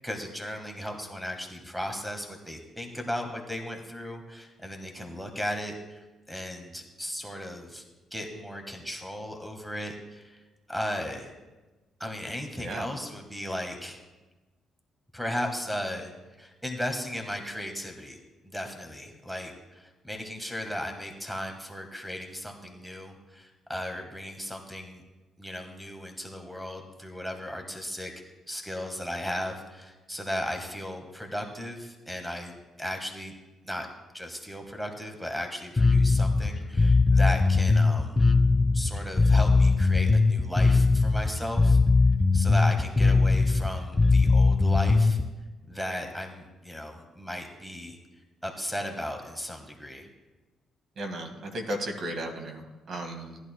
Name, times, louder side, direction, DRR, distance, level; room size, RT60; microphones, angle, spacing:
voice 1, 0.0-6.0 6.3-7.8 8.1-10.4 10.7-11.3 12.0-14.0 15.1-16.1 16.4-18.2 18.5-25.0 25.4-28.1 28.5-33.3 33.6-33.9 34.1-38.2 38.7-41.8 42.3-45.2 45.7-48.0 48.4-50.1, equal, ahead, 4 dB, 1.5 m, -36 dB
Bass guitar, 35.8-45.2, left 3 dB, 20° left, 0.6 m, -21 dB
voice 2, 51.0-53.4, right 1 dB, 55° right, 4 dB, 1.7 m, -35 dB
17.5 x 11.0 x 2.2 m, 1.1 s
cardioid pair, 90°, 0 cm